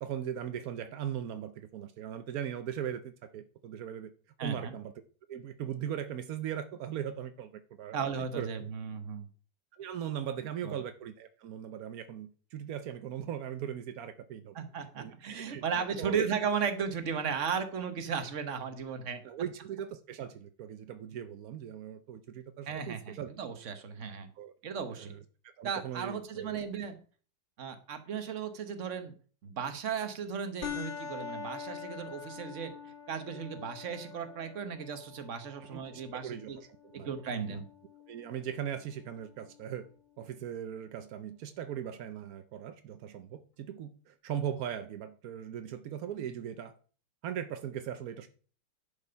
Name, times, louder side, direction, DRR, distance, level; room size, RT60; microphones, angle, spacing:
voice 1, 0.0-4.1 4.4-4.9 5.3-8.5 9.7-14.6 15.0-16.2 19.2-23.3 24.4-24.5 24.9-25.2 25.6-26.6 35.7-37.1 37.5-37.6 38.1-39.9 40.2-46.7 47.2-48.3, right 9 dB, 80° right, 0.8 m, -39 dB
voice 2, 4.4-4.7 7.9-9.3 10.6-10.8 14.5-19.2 22.7-24.3 24.6-25.1 25.6-27.0 27.6-29.1 29.4-36.6 37.0-37.7, right 6 dB, 45° right, 1.1 m, -35 dB
sound 1, 30.6-39.6, left 6 dB, 85° left, 2.2 m, -45 dB
10.5 x 5.2 x 5.6 m
omnidirectional pair, 2.4 m